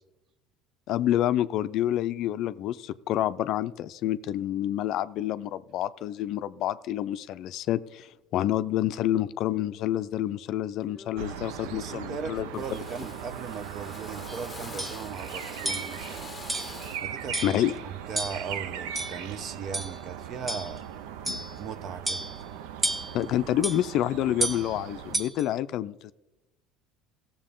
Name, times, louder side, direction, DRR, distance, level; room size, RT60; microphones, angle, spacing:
voice 1, 0.9-12.6 17.4-17.8 21.3-21.4 23.1-26.1, left 12 dB, 60° left, 13 dB, 0.4 m, -28 dB
Drill, 10.2-10.4 10.9-11.4 11.6-12.2 12.5-17.1, left 4 dB, 25° left, 0.7 m, -46 dB
sound 1, 11.2-25.2, right 9 dB, 80° right, 0.6 m, -39 dB
voice 2, 11.5-16.3 17.0-17.6 17.8-20.8 21.6-22.3, right 6 dB, 50° right, 12 dB, 0.8 m, -38 dB
sound 2, 14.3-14.4 14.8-15.0 15.6-15.9 16.5-16.8 17.3-17.6 18.2-18.5 18.9-19.3 19.7-20.0 20.5-20.8 21.2-21.5 22.1-22.4 22.8-23.2 23.6-23.8 24.4-24.7 25.1-25.4, right 2 dB, 15° right, 0.9 m, -31 dB
16.0 x 7.1 x 3.8 m, 1.0 s
supercardioid pair, 90°, 0 cm